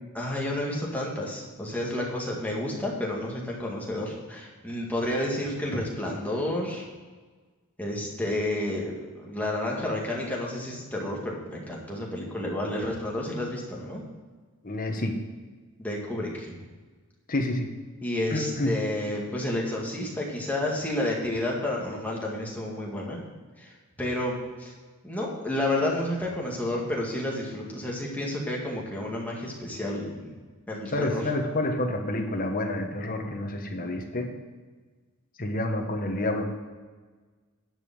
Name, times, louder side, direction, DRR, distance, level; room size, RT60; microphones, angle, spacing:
voice 1, 0.2-6.9 7.8-14.0 15.8-16.6 18.0-23.2 23.6-24.7 25.0-30.3 30.7-31.2, left 1 dB, 5° left, -3 dB, 2.0 m, -30 dB
voice 2, 14.6-15.2 17.3-17.7 18.3-18.8 30.9-34.3 35.4-36.4, left 1 dB, 40° left, 3 dB, 1.3 m, -28 dB
11.0 x 5.3 x 7.5 m, 1.4 s
head